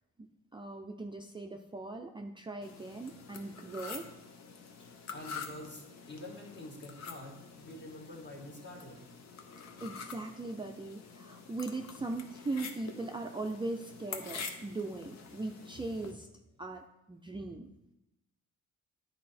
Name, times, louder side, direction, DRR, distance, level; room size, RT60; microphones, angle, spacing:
voice 1, 0.2-4.0 9.4-16.3 16.6-17.7, right 2 dB, 15° right, 3 dB, 0.5 m, -40 dB
sound 1, 2.6-16.1, left 5 dB, 65° left, 0.9 m, -47 dB
voice 2, 4.8-9.1, left 1 dB, 35° left, 0 dB, 1.9 m, -47 dB
9.4 x 4.2 x 4.3 m, 0.90 s
cardioid pair, 90°, 30 cm